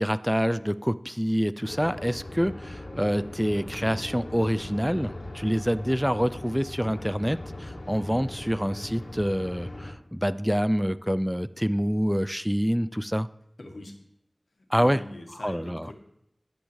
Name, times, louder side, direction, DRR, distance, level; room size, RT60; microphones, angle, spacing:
voice 1, 0.0-13.3 14.7-15.0 15.4-15.8, equal, 5° right, 15 dB, 0.3 m, -26 dB
sound 1, 1.6-9.9, left 1 dB, 65° left, 2.1 m, -39 dB
voice 2, 13.6-14.0 14.5-15.9, left 1 dB, 85° left, 3 dB, 1.7 m, -43 dB
10.5 x 6.0 x 8.0 m, 0.82 s
wide cardioid pair, 50°, 0 cm